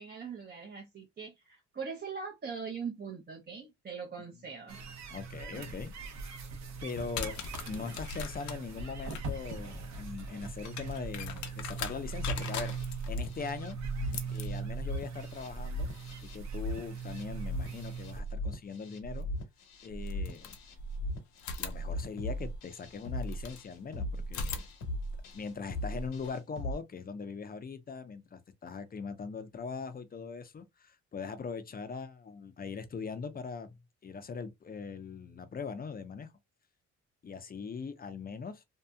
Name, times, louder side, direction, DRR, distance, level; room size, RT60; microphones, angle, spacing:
voice 1, 0.0-4.8 14.0-14.3, right 5 dB, 35° right, 0.7 m, -41 dB
sound 1, 4.7-18.2, right 5 dB, 65° right, 0.8 m, -41 dB
voice 2, 5.1-5.9 6.4-6.5 6.8-7.3 7.7-12.8 13.1-13.8 14.3-15.9 16.2-19.3 19.8-20.6 21.6-24.6 25.3-33.8 34.0-36.3 37.2-38.6, left 5 dB, 30° left, 0.5 m, -41 dB
sound 2, 6.9-17.7 19.2-19.3 20.0-21.0 21.4-23.7 24.2-26.3, left 5 dB, 70° left, 0.7 m, -43 dB
sound 3, 12.0-26.7, equal, 85° left, 1.1 m, -38 dB
2.7 x 2.6 x 2.2 m
cardioid pair, 90°, 30 cm